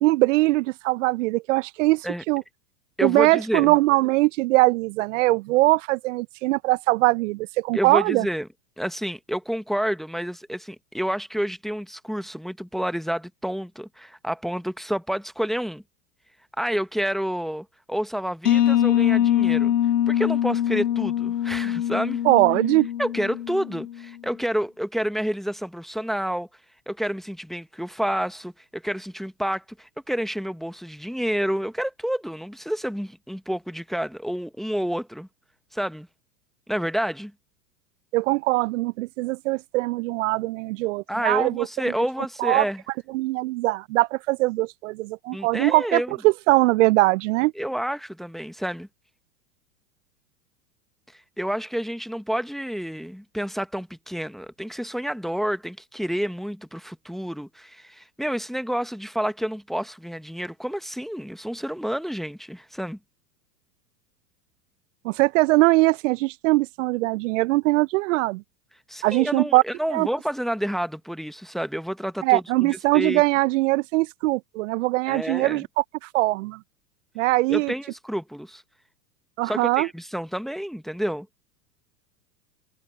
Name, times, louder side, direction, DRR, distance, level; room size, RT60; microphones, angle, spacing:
voice 1, 0.0-2.4 3.0-8.2 22.2-22.9 38.1-41.7 42.4-42.6 43.1-47.5 65.0-68.4 69.0-69.6 69.9-70.1 72.2-76.6 77.2-77.7 79.4-79.9, right 21 dB, 50° right, 1.1 m, -21 dB
voice 2, 3.0-3.7 7.7-8.5 8.8-15.8 16.6-19.7 20.1-22.2 23.0-26.5 26.9-35.3 35.7-36.1 36.7-37.3 41.1-42.8 45.3-46.1 47.5-48.9 51.4-63.0 68.9-73.2 75.1-75.6 77.5-78.6 79.4-81.3, equal, ahead, 1.4 m, -29 dB
sound 1, 18.4-24.0, left 11 dB, 70° left, 2.1 m, -23 dB
figure-of-eight pair, 95°, 49 cm